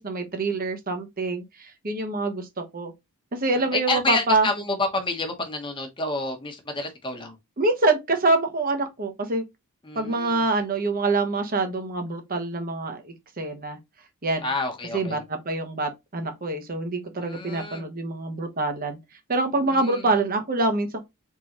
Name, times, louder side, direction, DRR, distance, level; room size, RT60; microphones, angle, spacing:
voice 1, 0.0-2.9 3.3-4.5 7.6-9.4 9.9-13.8 14.2-14.5 14.9-19.0 19.3-21.0, right 3 dB, 40° right, 1.1 m, -25 dB
voice 2, 3.6-7.4 9.8-10.4 14.4-15.2 17.2-17.9 19.6-20.1, left 3 dB, 20° left, 1.2 m, -29 dB
3.9 x 3.8 x 3.0 m
head